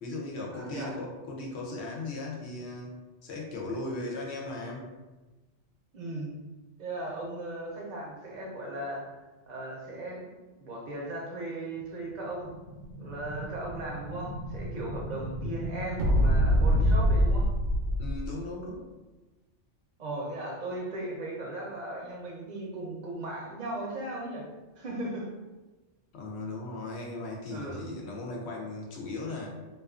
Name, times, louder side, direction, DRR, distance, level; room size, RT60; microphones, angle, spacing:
voice 1, 0.0-2.9 3.2-4.9 18.0-18.8 26.1-29.5, left 2 dB, 70° left, -1 dB, 0.8 m, -37 dB
voice 2, 0.5-0.9 5.9-6.3 6.8-9.0 9.5-10.2 10.6-12.5 13.0-17.5 20.0-24.5 24.8-25.4 27.5-28.1, right 1 dB, 50° right, -2 dB, 0.6 m, -37 dB
Explosion, 12.2-18.3, equal, 85° right, 0.9 m, -27 dB
2.4 x 2.3 x 2.4 m, 1.2 s
omnidirectional pair, 1.2 m